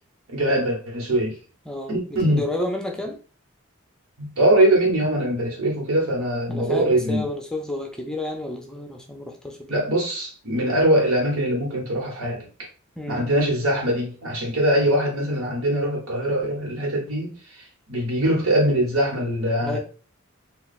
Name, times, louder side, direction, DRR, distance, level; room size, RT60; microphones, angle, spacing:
voice 1, 0.3-1.4 1.9-2.4 4.2-7.2 9.7-12.7 13.1-19.8, right 1 dB, 75° right, 1.2 m, -22 dB
voice 2, 1.7-3.2 6.5-9.7 13.0-13.3 19.6-19.8, left 1 dB, 5° left, 0.5 m, -31 dB
2.9 x 2.3 x 4.1 m
head